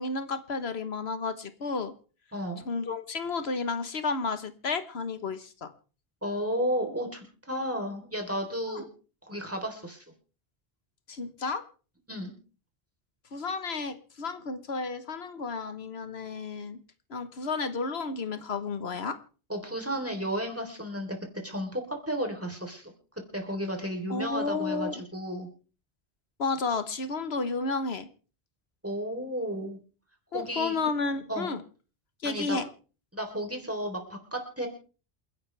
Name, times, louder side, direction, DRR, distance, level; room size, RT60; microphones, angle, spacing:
voice 1, 0.0-1.9 2.6-5.7 8.7-8.8 11.1-11.6 13.3-16.8 17.1-19.2 24.1-25.0 26.4-28.1 30.3-31.6 32.2-32.6, left 4 dB, 90° left, 10 dB, 1.5 m, -32 dB
voice 2, 2.3-2.6 6.2-8.9 9.3-10.0 12.1-12.3 19.5-21.2 21.4-22.9 23.3-25.5 28.8-29.8 30.3-30.8 31.3-31.5 32.2-32.6 33.1-34.7, equal, 15° right, 3 dB, 3.6 m, -33 dB
28.0 x 11.0 x 3.4 m, 0.38 s
omnidirectional pair, 1.0 m